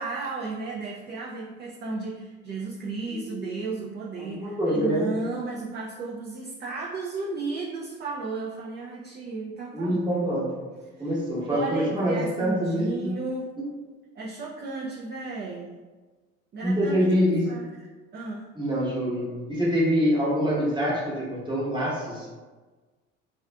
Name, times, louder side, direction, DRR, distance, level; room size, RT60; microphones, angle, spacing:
voice 1, 0.0-10.0 10.9-11.1 11.5-13.6 14.2-15.8 16.5-17.7 18.1-18.5, right 3 dB, 30° right, -4 dB, 0.4 m, -34 dB
voice 2, 3.1-3.4 4.2-5.1 9.7-10.5 11.0-13.1 16.6-17.4 18.6-22.3, equal, 10° right, -6 dB, 1.0 m, -25 dB
2.4 x 2.3 x 2.2 m, 1.3 s
hypercardioid pair, 65°, 37 cm